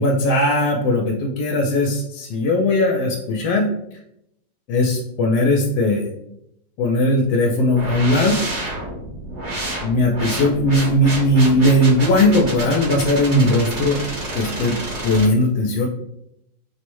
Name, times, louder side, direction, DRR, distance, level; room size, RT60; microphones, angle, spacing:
voice 1, 0.0-3.7 4.7-6.1 6.8-8.3 9.8-14.0 14.3-14.7 15.0-15.9, left 1 dB, 85° left, 0 dB, 1.3 m, -18 dB
sound 1, 7.8-15.3, right 1 dB, 45° right, 1.2 m, -29 dB
4.8 x 2.1 x 3.0 m, 0.78 s
omnidirectional pair, 1.9 m